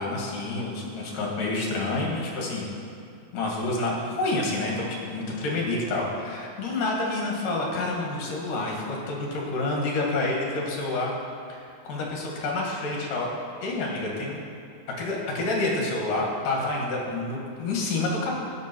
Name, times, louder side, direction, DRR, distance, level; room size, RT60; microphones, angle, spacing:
voice 1, 0.0-2.7 3.3-11.1 11.5-11.6 11.8-13.3 13.6-14.4 15.0-18.4, left 2 dB, 70° left, -2 dB, 3.5 m, -28 dB
18.0 x 7.7 x 4.5 m, 2.4 s
omnidirectional pair, 4.0 m